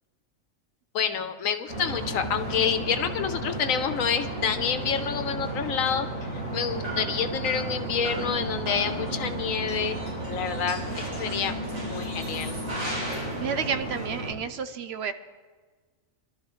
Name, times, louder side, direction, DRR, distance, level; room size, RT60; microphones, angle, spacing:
voice 1, 0.9-9.9 10.3-11.5 11.8-12.5, left 7 dB, 85° left, 9 dB, 1.3 m, -28 dB
sound 1, 1.7-14.3, right 1 dB, 85° right, 4.2 m, -33 dB
voice 2, 13.4-15.1, right 6 dB, 65° right, 10 dB, 0.7 m, -30 dB
23.5 x 12.5 x 3.1 m, 1.4 s
omnidirectional pair, 1.4 m